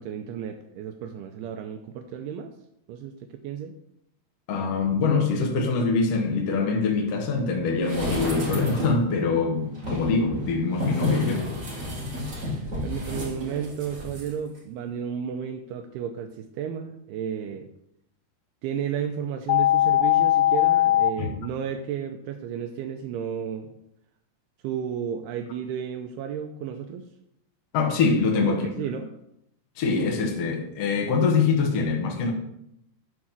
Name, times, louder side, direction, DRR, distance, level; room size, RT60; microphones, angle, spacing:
voice 1, 0.0-2.5 2.9-3.7 12.5-17.7 18.6-23.7 24.6-27.1 28.4-29.1, right 8 dB, 85° right, 2.5 m, -33 dB
voice 2, 4.5-11.5 21.2-21.3 27.7-28.6 29.8-32.3, left 4 dB, 70° left, 1.4 m, -24 dB
sound 1, 7.8-9.1 9.8-14.3 14.6-14.7, left 1 dB, 55° right, 0.9 m, -30 dB
sound 2, 19.5-21.1, left 14 dB, 90° left, 2.7 m, -19 dB
11.0 x 3.7 x 5.9 m
omnidirectional pair, 4.7 m